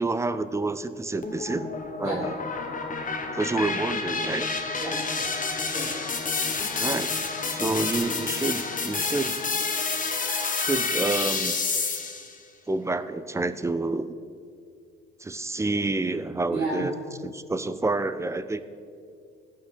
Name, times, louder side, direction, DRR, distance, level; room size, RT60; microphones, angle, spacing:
voice 1, 0.0-1.7 2.0-2.4 3.3-4.5 6.8-7.1 7.5-9.4 10.6-11.6 12.7-14.1 15.2-16.9 17.2-18.6, right 3 dB, 10° right, 12 dB, 0.5 m, -28 dB
sound 1, 1.2-12.3, left 4 dB, 25° left, 1.1 m, -29 dB
voice 2, 3.1-3.4 4.8-5.3 5.6-5.9 16.5-16.9, right 2 dB, 85° right, -7 dB, 3.0 m, -33 dB
16.0 x 5.7 x 6.0 m, 2.3 s
figure-of-eight pair, 55°, 32 cm